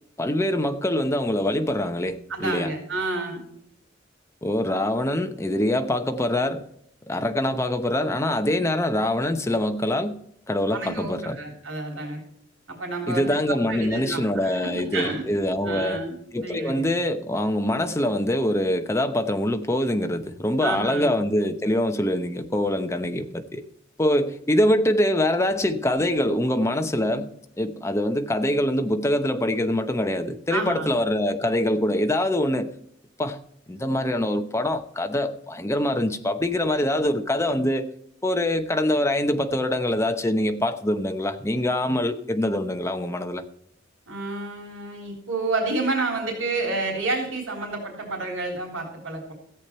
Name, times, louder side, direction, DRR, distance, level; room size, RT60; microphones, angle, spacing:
voice 1, 0.2-2.7 4.4-6.7 7.1-10.2 10.5-11.4 13.1-16.0 16.3-23.6 24.0-32.7 33.2-33.4 33.7-37.9 38.2-43.4, left 1 dB, 15° left, 0.9 m, -24 dB
voice 2, 2.3-3.4 10.7-12.2 12.7-15.2 15.6-16.2 16.4-16.9 20.6-21.2 30.5-30.9 44.1-49.3, right 3 dB, 85° right, 3.4 m, -29 dB
14.0 x 8.4 x 4.4 m
head